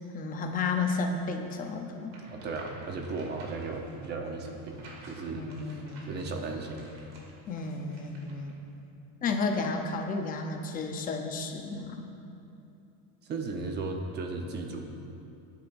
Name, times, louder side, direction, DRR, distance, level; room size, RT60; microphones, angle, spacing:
voice 1, 0.1-2.2 5.4-6.1 7.5-8.5 9.2-12.1, left 3 dB, 20° left, 4 dB, 0.7 m, -32 dB
sound 1, 2.0-8.5, right 2 dB, 45° right, 2.6 m, -53 dB
voice 2, 2.3-5.5 6.1-6.9 13.2-14.9, right 3 dB, 25° right, 3 dB, 0.9 m, -36 dB
19.5 x 10.5 x 2.6 m, 2.8 s
cardioid pair, 170°, 39 cm